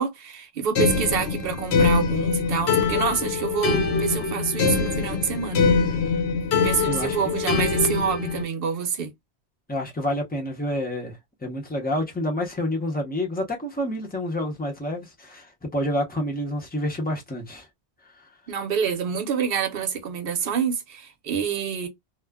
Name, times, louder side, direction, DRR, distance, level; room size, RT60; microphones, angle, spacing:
voice 1, 0.0-5.6 6.5-9.1 18.5-21.9, right 7 dB, 65° right, 0.8 m, -27 dB
sound 1, 0.8-8.4, left 4 dB, 85° left, 0.9 m, -23 dB
voice 2, 9.7-17.7, left 1 dB, 10° left, 0.7 m, -28 dB
2.4 x 2.1 x 3.4 m
omnidirectional pair, 1.1 m